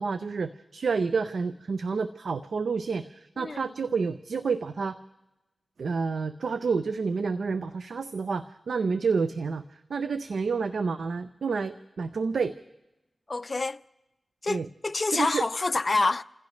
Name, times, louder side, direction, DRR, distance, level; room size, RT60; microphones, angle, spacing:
voice 1, 0.0-3.0 3.4-5.0 5.8-9.6 9.9-12.5 14.5-14.7 15.1-15.4, right 5 dB, 85° right, 0.5 m, -29 dB
voice 2, 13.3-13.8 14.4-16.2, left 3 dB, 50° left, 0.5 m, -27 dB
29.0 x 15.5 x 3.2 m
cardioid pair, 55°, 0 cm